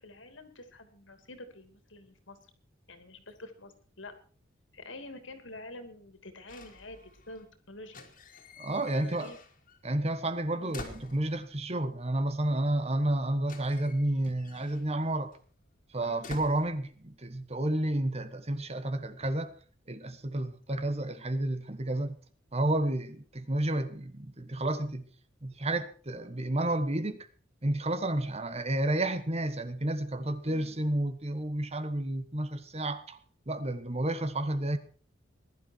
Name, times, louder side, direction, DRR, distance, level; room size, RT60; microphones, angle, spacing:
voice 1, 0.0-2.4 2.9-4.1 4.7-7.0 7.3-8.1 8.9-9.4 10.5-10.8 16.0-16.3 20.7-20.9 30.5-30.8, left 2 dB, 75° left, 2.9 m, -48 dB
sound 1, 6.5-7.5 7.8-9.8 10.1-11.7 12.7-12.8 13.0-17.4 17.7-18.2, left 3 dB, 45° left, 2.6 m, -49 dB
voice 2, 8.6-9.3 9.8-15.3 15.9-19.5 19.9-22.2 22.5-25.0 25.4-27.3 27.6-33.2 33.5-34.8, right 1 dB, 35° right, 1.5 m, -31 dB
20.0 x 12.0 x 4.7 m
head